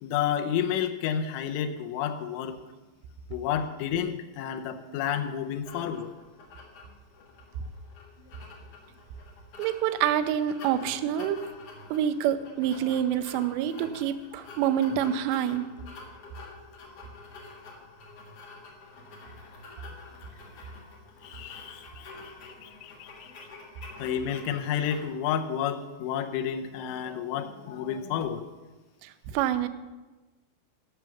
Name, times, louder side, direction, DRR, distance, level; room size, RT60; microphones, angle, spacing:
voice 1, 0.0-2.6 3.3-6.1 21.2-23.3 24.0-28.5, left 9 dB, 90° left, 6 dB, 3.2 m, -31 dB
sound 1, 5.7-25.0, left 3 dB, 65° left, 1.5 m, -48 dB
voice 2, 9.6-11.5 11.9-15.6 29.0-29.7, right 10 dB, 80° right, 9 dB, 2.7 m, -27 dB
14.0 x 5.9 x 7.1 m, 1.2 s
omnidirectional pair, 5.4 m